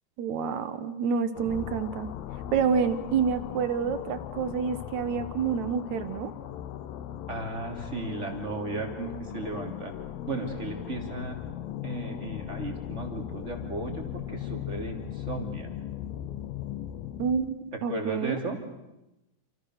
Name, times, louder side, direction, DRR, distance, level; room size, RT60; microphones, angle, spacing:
voice 1, 0.2-2.1 2.5-6.3 17.2-18.4, right 6 dB, 75° right, 11 dB, 1.7 m, -28 dB
sound 1, 1.4-17.6, left 11 dB, 70° left, 2.6 m, -38 dB
voice 2, 7.3-9.9 10.3-11.4 11.8-15.7 17.9-18.6, right 2 dB, 20° right, 3 dB, 3.2 m, -35 dB
28.5 x 27.5 x 6.7 m, 0.93 s
omnidirectional pair, 5.0 m